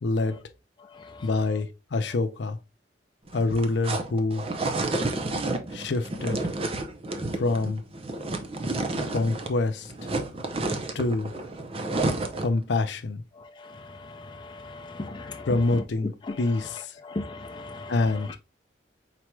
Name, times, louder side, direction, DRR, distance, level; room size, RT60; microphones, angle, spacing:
voice 1, 0.0-0.4 1.2-2.6 3.3-4.5 5.7-6.4 7.4-7.8 9.1-9.9 10.9-11.3 12.4-13.2 15.5-16.1 16.4-17.0 17.9-18.3, left 3 dB, 75° left, 0.6 m, -26 dB
voice 2, 0.8-1.6 13.3-18.4, left 2 dB, 25° left, 0.5 m, -39 dB
sound 1, 3.3-9.6 9.8-12.6, right 2 dB, 35° right, 0.6 m, -30 dB
4.6 x 4.1 x 2.2 m
head